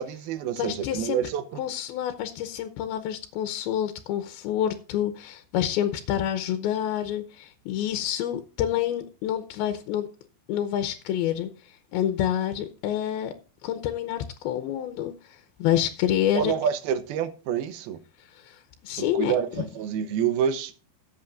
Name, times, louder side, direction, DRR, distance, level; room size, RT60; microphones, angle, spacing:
voice 1, 0.0-1.6 16.4-18.0 19.0-20.7, right 8 dB, 85° right, 2.8 m, -28 dB
voice 2, 0.6-1.2 1.6-10.1 10.5-13.3 13.6-16.5 18.3-19.4, left 11 dB, 90° left, 2.7 m, -28 dB
18.5 x 8.2 x 2.5 m
omnidirectional pair, 4.3 m